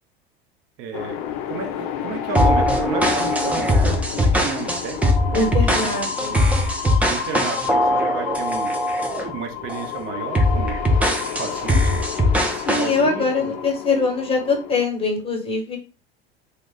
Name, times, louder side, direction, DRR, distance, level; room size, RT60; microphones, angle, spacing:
voice 1, 0.8-1.2 1.5-5.6 6.3-6.4 7.1-8.7 9.3-10.7 11.4-12.0 12.8-13.5, right 6 dB, 45° right, 4 dB, 0.7 m, -32 dB
sound 1, 0.9-14.8, left 9 dB, 45° left, 0.5 m, -31 dB
sound 2, 2.3-9.3 9.7-9.9 10.3-12.9, left 1 dB, 5° right, 0.5 m, -20 dB
voice 2, 5.3-6.4 12.6-15.8, left 4 dB, 20° left, 2 dB, 1.1 m, -22 dB
2.3 x 2.3 x 3.7 m, 0.34 s
figure-of-eight pair, 80°, 30 cm